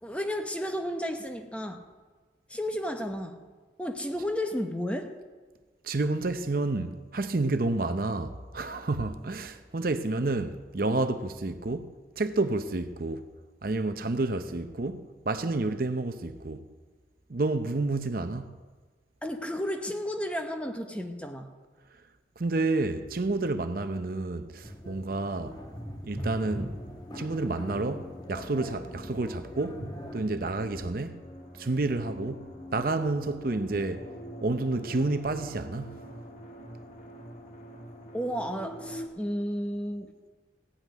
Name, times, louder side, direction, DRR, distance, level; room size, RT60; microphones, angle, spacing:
voice 1, 0.0-1.8 2.5-3.4 3.8-5.2 19.2-21.5 38.1-40.1, equal, 5° left, 0.8 m, -32 dB
voice 2, 5.8-11.9 12.2-13.2 13.6-16.6 17.3-18.5 22.4-25.6 26.0-26.7 27.1-29.8 30.1-31.2 31.6-34.0 34.4-36.0, right 2 dB, 50° right, 0.7 m, -30 dB
sound 1, 24.6-30.2, equal, 20° left, 1.1 m, -41 dB
sound 2, 26.3-39.1, equal, 40° left, 1.4 m, -45 dB
16.0 x 5.9 x 9.1 m
head